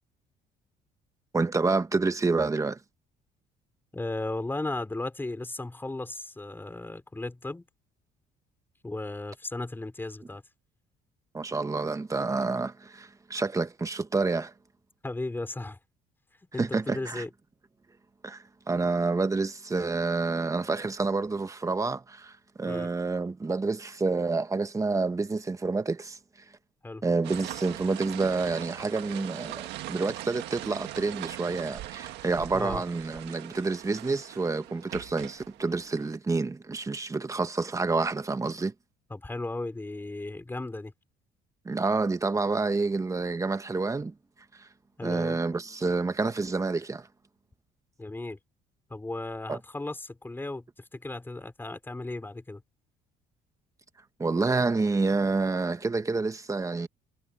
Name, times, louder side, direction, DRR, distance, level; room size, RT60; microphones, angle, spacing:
voice 1, 1.3-2.8 11.3-14.5 16.6-17.2 18.2-22.3 22.6-26.2 27.0-38.7 41.6-44.1 44.6-44.7 45.0-47.1 49.5-49.6 54.2-56.9, right 3 dB, 20° right, 1.4 m, -28 dB
voice 2, 3.9-7.7 8.8-10.4 15.0-15.8 16.5-17.3 22.7-22.9 26.8-27.0 32.5-32.8 39.1-40.9 45.0-45.4 48.0-48.4 48.9-52.6, left 2 dB, 10° left, 3.9 m, -35 dB
sound 1, 27.2-36.2, right 15 dB, 85° right, 1.7 m, -41 dB
cardioid pair, 110°, 17 cm